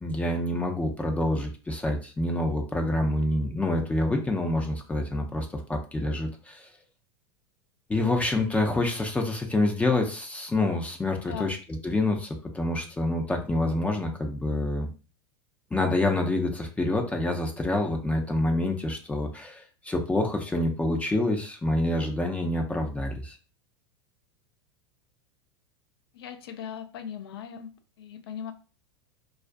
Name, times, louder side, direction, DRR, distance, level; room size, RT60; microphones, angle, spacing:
voice 1, 0.0-6.7 7.9-11.6 11.8-14.9 15.7-23.4, left 2 dB, 10° left, 0.4 m, -27 dB
voice 2, 26.1-27.7 28.0-28.5, left 8 dB, 70° left, 0.5 m, -38 dB
2.4 x 2.1 x 2.5 m
hypercardioid pair, 90°, 13 cm